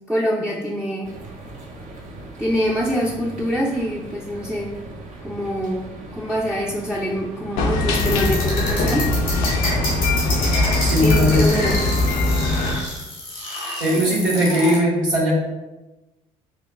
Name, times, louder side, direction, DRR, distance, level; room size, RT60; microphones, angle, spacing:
voice 1, 0.1-1.1 2.4-4.8 5.2-9.1 11.0-11.8, equal, 5° right, -5 dB, 0.6 m, -25 dB
sound 1, 1.0-12.1, right 2 dB, 45° right, 0.7 m, -39 dB
sound 2, 7.6-12.7, left 2 dB, 60° left, 0.6 m, -21 dB
sound 3, 7.9-14.8, left 1 dB, 90° left, 1.4 m, -28 dB
voice 2, 10.8-11.4 13.8-15.3, equal, 85° right, -7 dB, 1.3 m, -19 dB
6.0 x 2.3 x 2.3 m, 1.0 s
hypercardioid pair, 55°, 17 cm